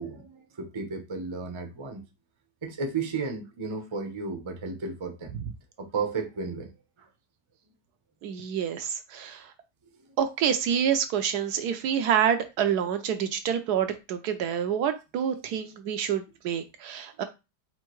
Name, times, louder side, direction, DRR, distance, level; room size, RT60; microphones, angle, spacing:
voice 1, 0.0-2.0 2.6-5.3 5.8-6.7, right 4 dB, 30° right, 0.5 m, -33 dB
voice 2, 8.2-9.4 10.2-17.2, right 8 dB, 75° right, 1.1 m, -27 dB
5.6 x 2.5 x 3.0 m
omnidirectional pair, 1.8 m